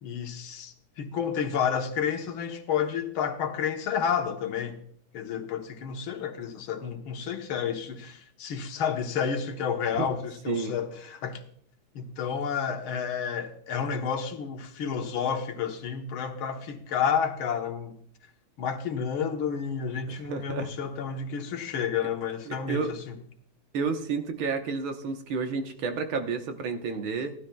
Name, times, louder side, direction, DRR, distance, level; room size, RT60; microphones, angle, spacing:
voice 1, 0.0-4.8 5.1-11.4 12.0-17.9 18.6-23.1, left 7 dB, 90° left, 1.9 m, -30 dB
voice 2, 20.1-20.7 22.5-22.9 23.7-27.3, right 5 dB, 80° right, 1.9 m, -31 dB
17.5 x 12.0 x 2.3 m
omnidirectional pair, 2.2 m